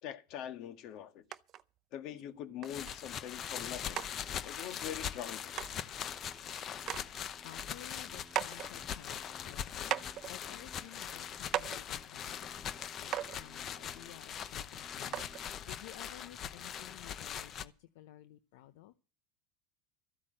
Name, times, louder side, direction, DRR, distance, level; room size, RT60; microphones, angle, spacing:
voice 1, 0.0-1.2 1.9-4.1 4.4-5.5, left 10 dB, 55° left, 1.6 m, -43 dB
sound 1, 1.3-1.6 2.2-2.3 2.6-3.0 3.5-3.6 4.0-4.1 5.2-5.3 5.6-5.8 6.3-6.4 6.8-7.0 7.4-8.7 9.3-9.4 9.9-10.3 11.0-11.1 11.5-11.8 12.8-12.9 13.1-13.4 14.4-14.5 15.1-15.4 16.3-16.4, right 12 dB, 40° right, 0.7 m, -38 dB
sound 2, 2.6-17.7, left 9 dB, 40° left, 0.8 m, -42 dB
sound 3, 3.4-17.5, left 2 dB, 15° left, 2.9 m, -60 dB
voice 2, 7.4-18.9, left 14 dB, 75° left, 0.7 m, -54 dB
14.0 x 8.6 x 7.7 m
supercardioid pair, 115°, 0 cm